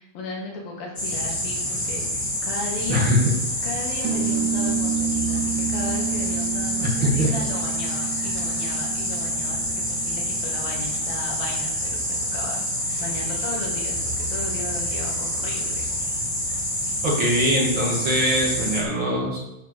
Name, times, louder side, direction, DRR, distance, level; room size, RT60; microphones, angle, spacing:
voice 1, 0.0-3.1 3.6-12.7 13.0-15.8, left 3 dB, 85° left, -1 dB, 4.1 m, -35 dB
sound 1, 1.0-18.8, equal, 15° left, 2.4 m, -27 dB
voice 2, 2.9-3.3 7.0-7.3 17.0-19.4, equal, 40° right, -3 dB, 2.4 m, -22 dB
sound 2, 4.0-11.0, right 9 dB, 75° right, 2.3 m, -30 dB
9.2 x 7.0 x 6.6 m, 0.91 s
omnidirectional pair, 4.0 m